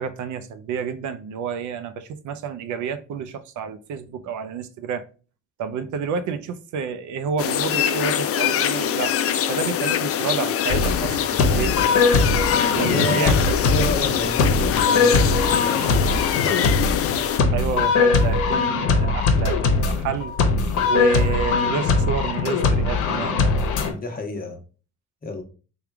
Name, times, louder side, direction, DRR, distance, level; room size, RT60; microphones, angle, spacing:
voice 1, 0.0-5.0 5.6-11.9 12.6-13.5 17.5-20.4 20.9-23.5, right 6 dB, 75° right, 0.5 m, -29 dB
sound 1, 7.4-17.4, left 10 dB, 50° left, 0.4 m, -24 dB
sound 2, 10.7-23.9, left 4 dB, 85° left, 0.8 m, -21 dB
voice 2, 12.8-16.4 23.9-24.6 25.2-25.4, left 1 dB, 30° left, 0.9 m, -30 dB
3.5 x 2.3 x 4.4 m
cardioid pair, 90°, 30 cm